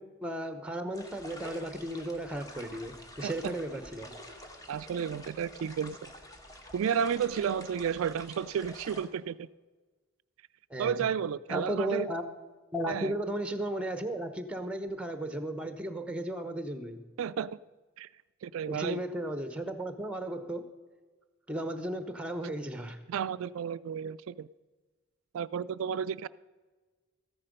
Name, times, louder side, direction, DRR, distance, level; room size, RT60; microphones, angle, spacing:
voice 1, 0.0-4.2 10.7-11.1 11.5-12.2 12.7-17.0 18.7-20.7 21.5-23.0, right 1 dB, 5° right, 9 dB, 0.9 m, -35 dB
sound 1, 0.9-9.1, left 1 dB, 15° left, 1.2 m, -48 dB
voice 2, 3.2-3.5 4.7-6.1 6.7-9.5 10.8-12.1 12.9-13.1 17.2-17.6 18.0-18.1 18.4-19.0 23.1-24.5 25.3-26.3, right 8 dB, 80° right, 15 dB, 0.3 m, -32 dB
14.0 x 9.9 x 5.2 m, 1.4 s
head